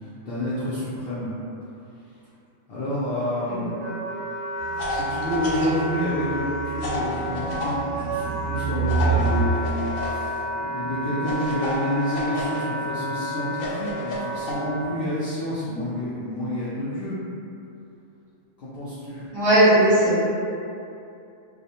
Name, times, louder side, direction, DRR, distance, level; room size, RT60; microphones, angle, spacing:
voice 1, 0.3-1.3 2.7-3.8 4.9-17.2 18.6-19.3, left 1 dB, 65° left, -10 dB, 0.6 m, -29 dB
Wind instrument woodwind instrument, 3.2-14.8, equal, 75° right, 0.9 m, -32 dB
sound 1, 4.6-9.5, right 5 dB, 55° right, 0.6 m, -29 dB
sound 2, 4.8-5.8 6.8-7.7 8.9-10.2 11.2-12.6 13.5-14.5, left 2 dB, 85° left, 1.0 m, -31 dB
voice 2, 19.3-20.3, right 1 dB, 20° right, -14 dB, 0.8 m, -18 dB
2.3 x 2.1 x 2.7 m, 2.6 s
omnidirectional pair, 1.4 m